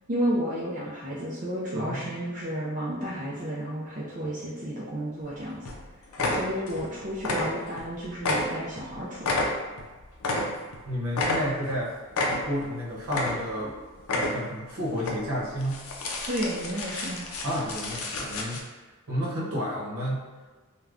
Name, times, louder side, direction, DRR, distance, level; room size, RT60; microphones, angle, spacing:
voice 1, 0.1-5.6 6.3-9.4 16.3-17.3, equal, 35° right, -6 dB, 0.4 m, -32 dB
voice 2, 1.7-2.2 6.2-6.4 10.9-12.0 12.3-13.7 14.1-15.8 17.4-18.6 19.1-20.2, equal, 75° right, -5 dB, 0.9 m, -31 dB
sound 1, 5.2-5.4 5.7-5.8 6.1-6.9 7.2-7.9 8.2-10.8 11.1-11.8 12.1-12.7 13.0-13.7 14.0-14.6 15.0-15.1 15.6-18.6, left 2 dB, 75° left, 0.5 m, -30 dB
2.4 x 2.2 x 3.4 m, 1.3 s
head